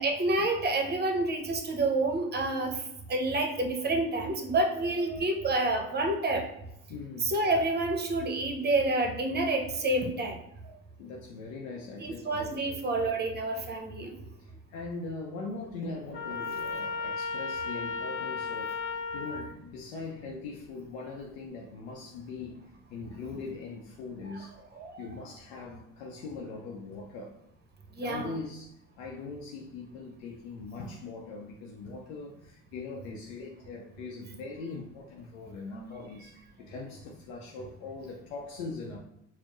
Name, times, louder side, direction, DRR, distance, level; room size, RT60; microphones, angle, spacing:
voice 1, 0.0-2.7 3.1-6.4 7.2-10.4 12.0-14.2 24.2-24.4 24.8-25.3 28.0-28.4, right 2 dB, 25° right, 4 dB, 0.7 m, -28 dB
voice 2, 6.9-7.3 11.0-12.5 14.4-18.8 19.1-24.5 25.0-27.4 28.0-39.0, left 3 dB, 90° left, 0 dB, 0.6 m, -41 dB
Trumpet, 16.1-19.5, left 4 dB, 35° left, 0.5 m, -34 dB
4.2 x 2.1 x 3.0 m, 0.82 s
supercardioid pair, 85°, 40 cm